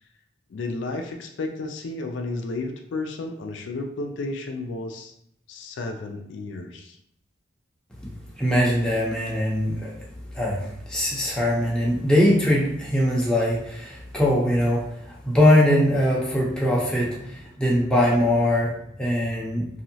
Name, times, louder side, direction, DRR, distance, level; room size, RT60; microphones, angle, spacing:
voice 1, 0.5-5.1 5.5-7.0, left 2 dB, 75° left, 4 dB, 0.4 m, -32 dB
voice 2, 8.4-9.9 10.3-19.7, left 1 dB, 5° left, -5 dB, 0.6 m, -22 dB
3.0 x 2.7 x 2.7 m, 0.75 s
head